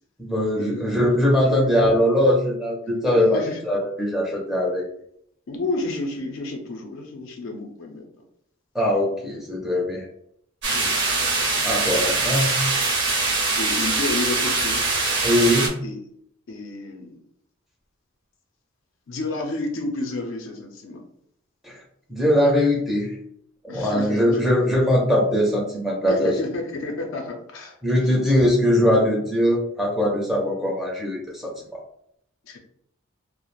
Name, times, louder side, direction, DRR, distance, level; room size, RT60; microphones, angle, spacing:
voice 1, 0.2-4.8 8.7-10.1 11.6-12.6 15.2-15.8 21.6-21.8 22.1-23.1 23.6-26.3 27.8-31.8, equal, ahead, -3 dB, 0.4 m, -21 dB
voice 2, 1.2-1.7 3.3-3.7 5.5-8.1 10.7-11.0 13.6-14.9 15.8-16.0 16.5-17.2 19.1-21.0 23.7-24.5 26.1-28.4 32.4-32.6, left 2 dB, 65° left, 2 dB, 0.4 m, -31 dB
sound 1, 10.6-15.7, right 3 dB, 55° right, 0.7 m, -23 dB
2.3 x 2.0 x 3.0 m, 0.69 s
head